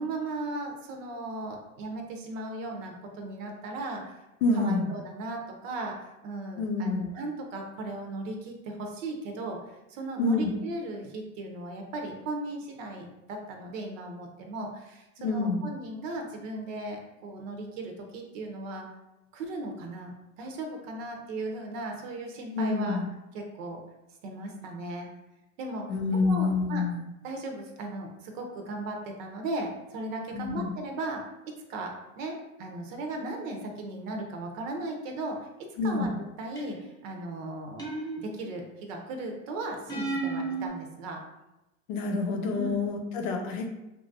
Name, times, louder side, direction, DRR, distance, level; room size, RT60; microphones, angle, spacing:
voice 1, 0.0-4.2 4.5-18.9 19.3-23.0 23.3-23.8 24.2-25.1 25.6-25.9 26.1-26.8 27.2-36.1 36.4-37.9 38.2-41.2 42.5-42.8, right 2 dB, 75° right, 2 dB, 0.7 m, -37 dB
voice 2, 4.4-4.9 6.6-7.1 10.2-10.5 15.2-15.6 22.5-23.1 25.9-27.0 30.3-30.7 35.8-36.1 41.9-43.7, left 3 dB, 80° left, 3 dB, 0.7 m, -27 dB
sound 1, 36.6-37.0 37.8-38.7 39.9-40.7, right 3 dB, 10° left, 0.7 m, -33 dB
3.0 x 2.4 x 2.6 m, 0.96 s
hypercardioid pair, 95°, 39 cm